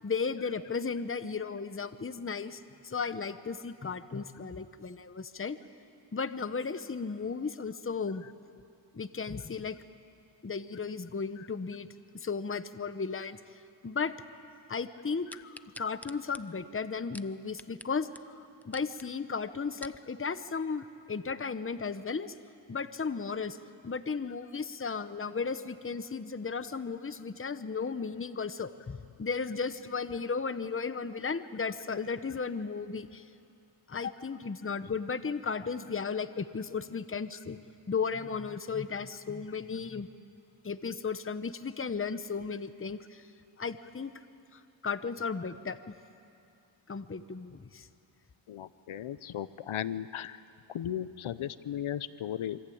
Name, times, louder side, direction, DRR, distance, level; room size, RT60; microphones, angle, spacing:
voice 1, 0.0-5.6 6.1-8.2 8.9-9.8 10.4-11.9 12.1-13.4 13.8-14.1 14.7-15.3 15.8-18.1 18.6-22.3 22.7-23.6 23.8-33.2 33.9-37.6 37.9-40.1 40.6-43.2 43.6-44.1 44.5-45.9 46.9-47.9, left 5 dB, 25° left, 11 dB, 1.0 m, -35 dB
sound 1, 15.3-17.9 18.1-18.2 18.6-19.1 19.5-20.0 20.6-20.7, left 1 dB, 5° left, 0.7 m, -48 dB
voice 2, 48.5-50.4 50.7-52.6, left 10 dB, 85° left, 14 dB, 0.8 m, -36 dB
27.5 x 24.5 x 8.7 m, 2.6 s
wide cardioid pair, 70°, 47 cm